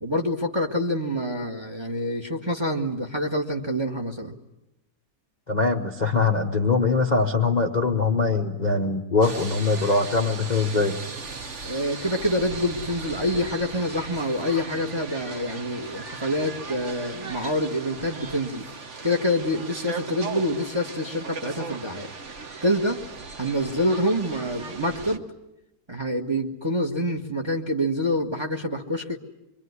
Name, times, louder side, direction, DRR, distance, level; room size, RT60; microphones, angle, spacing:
voice 1, 0.0-4.3 11.6-18.7 19.0-22.1 22.6-23.0 23.4-25.2 25.9-29.2, equal, 15° right, 4 dB, 1.5 m, -26 dB
voice 2, 5.5-11.0, left 4 dB, 30° left, 3 dB, 1.1 m, -22 dB
sound 1, 9.2-25.2, right 4 dB, 45° right, 1.5 m, -37 dB
25.0 x 24.0 x 9.7 m, 0.89 s
omnidirectional pair, 1.9 m